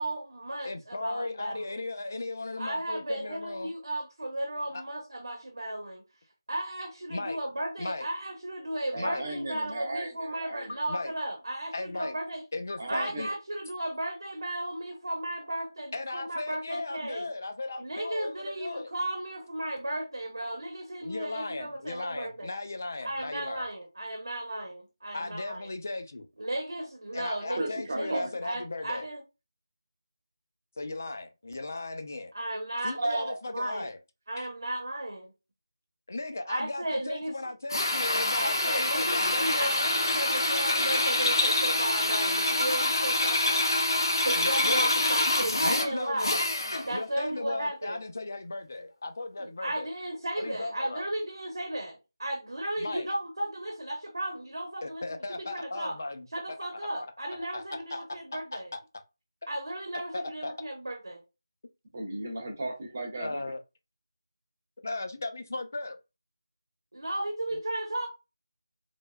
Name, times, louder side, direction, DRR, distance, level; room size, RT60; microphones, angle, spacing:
voice 1, 0.0-1.8 2.6-6.0 6.5-12.4 12.9-17.3 17.8-22.5 23.0-25.7 26.4-29.2 32.3-33.0 33.5-33.9 34.3-35.3 36.5-37.3 38.3-43.6 44.2-46.4 46.9-48.0 49.4-56.0 56.3-58.7 59.5-61.2 66.9-68.1, right 1 dB, 70° right, 0.9 m, -35 dB
voice 2, 0.6-3.7 4.7-4.8 7.1-7.4 7.8-8.1 9.0-9.2 10.9-11.1 11.7-12.1 12.5-13.3 15.9-18.9 21.0-23.7 25.1-26.3 27.1-29.0 30.8-32.3 32.8-34.0 34.4-34.5 36.1-39.7 44.4-44.9 45.6-46.4 46.9-49.9 50.4-51.1 52.8-53.1 54.8-56.3 56.7-57.1 57.4-58.0 58.3-58.8 60.1-60.5 63.2-63.6 64.8-66.0 67.5-67.6, left 2 dB, 35° left, 0.3 m, -36 dB
voice 3, 8.9-10.8 12.8-13.3 27.6-28.3 33.0-33.4 61.9-63.4, right 2 dB, 25° right, 0.6 m, -34 dB
Drill, 37.7-47.0, left 2 dB, 65° left, 0.7 m, -26 dB
3.2 x 2.1 x 2.2 m
figure-of-eight pair, 180°, 2 cm